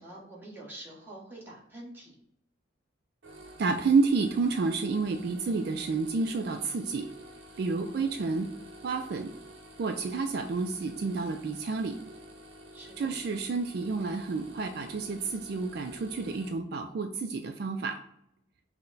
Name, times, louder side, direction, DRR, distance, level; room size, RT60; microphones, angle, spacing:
voice 1, 0.0-2.1 7.8-8.0 12.7-13.1, right 1 dB, 10° right, -5 dB, 1.3 m, -46 dB
sound 1, 3.2-16.5, right 1 dB, 80° right, 0.8 m, -49 dB
voice 2, 3.6-7.1 7.6-8.5 8.8-9.3 9.8-12.0 13.0-18.0, right 4 dB, 55° right, 6 dB, 0.3 m, -29 dB
5.8 x 2.1 x 3.9 m, 0.75 s
head